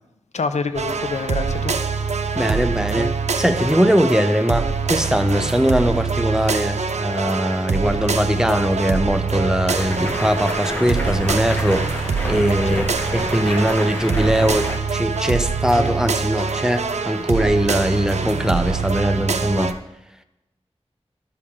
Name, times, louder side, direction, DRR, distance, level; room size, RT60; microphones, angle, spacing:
voice 1, 0.3-1.7 12.7-12.8, left 4 dB, 85° left, 0.5 m, -26 dB
sound 1, 0.7-19.7, right 5 dB, 85° right, 0.6 m, -24 dB
voice 2, 2.4-19.8, equal, 5° right, 0.6 m, -21 dB
Stream, 9.8-14.8, left 1 dB, 15° left, 1.3 m, -29 dB
12.0 x 6.6 x 3.6 m
wide cardioid pair, 75°, 11 cm